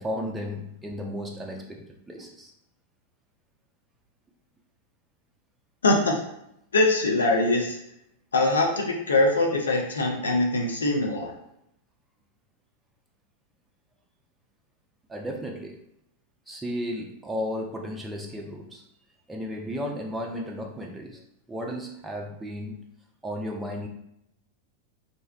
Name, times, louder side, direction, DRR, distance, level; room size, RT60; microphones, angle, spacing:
voice 1, 0.0-2.5 15.1-15.8 16.5-18.8 19.3-21.2 21.5-22.8 23.2-23.9, equal, 10° right, 0 dB, 0.3 m, -34 dB
voice 2, 5.8-6.2 6.7-7.8 8.3-11.3, left 2 dB, 70° left, 1 dB, 0.4 m, -23 dB
2.6 x 2.1 x 2.3 m, 0.79 s
figure-of-eight pair, 90°, 0 cm